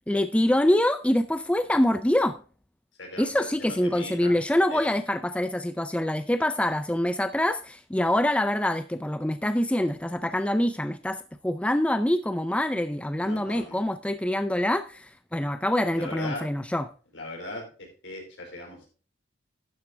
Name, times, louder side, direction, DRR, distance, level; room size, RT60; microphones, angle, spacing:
voice 1, 0.1-2.4 3.2-16.9, left 1 dB, 5° left, 0.4 m, -25 dB
voice 2, 3.0-4.4 4.7-4.8 8.0-8.1 13.2-13.8 15.9-16.5 17.1-18.9, left 1 dB, 75° left, 4.9 m, -39 dB
12.0 x 7.5 x 3.3 m
head